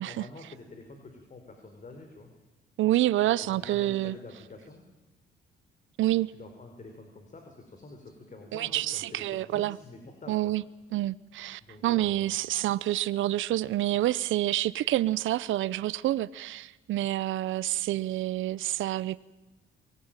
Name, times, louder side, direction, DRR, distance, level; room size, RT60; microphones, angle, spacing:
voice 1, 0.0-2.3 3.2-4.8 6.3-10.4 11.6-12.3, left 3 dB, 40° left, 4.5 m, -47 dB
voice 2, 2.8-4.2 6.0-6.3 8.5-9.8 10.3-10.6 10.9-19.2, right 14 dB, 75° right, 0.7 m, -28 dB
24.0 x 18.5 x 9.0 m
cardioid pair, 90°, 20 cm